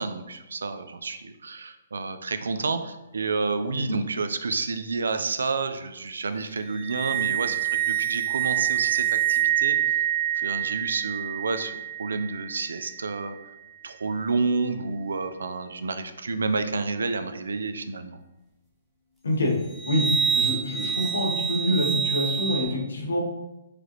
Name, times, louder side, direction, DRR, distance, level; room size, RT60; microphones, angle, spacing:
voice 1, 0.0-9.8 10.4-13.4 13.8-18.2, right 4 dB, 85° right, 9 dB, 0.3 m, -30 dB
sound 1, 6.7-12.9 19.7-22.6, right 10 dB, ahead, 0.9 m, -26 dB
voice 2, 20.3-23.2, left 1 dB, 90° left, -1 dB, 1.1 m, -26 dB
4.8 x 2.5 x 3.0 m, 0.97 s
hypercardioid pair, 140°, 0 cm